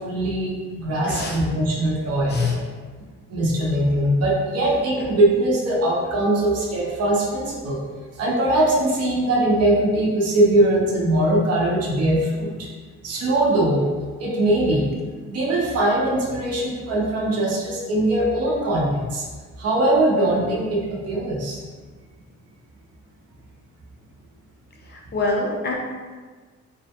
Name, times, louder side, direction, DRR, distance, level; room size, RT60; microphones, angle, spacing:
voice 1, 0.0-2.6 3.3-7.8 8.2-12.7 13.0-13.9 14.2-14.9 15.3-19.2 19.6-21.6, right 1 dB, 55° right, -4 dB, 0.7 m, -21 dB
voice 2, 1.1-1.4 2.3-2.5 24.8-25.7, left 2 dB, 35° left, -1 dB, 0.5 m, -26 dB
2.2 x 2.1 x 2.7 m, 1.4 s
cardioid pair, 90°, 30 cm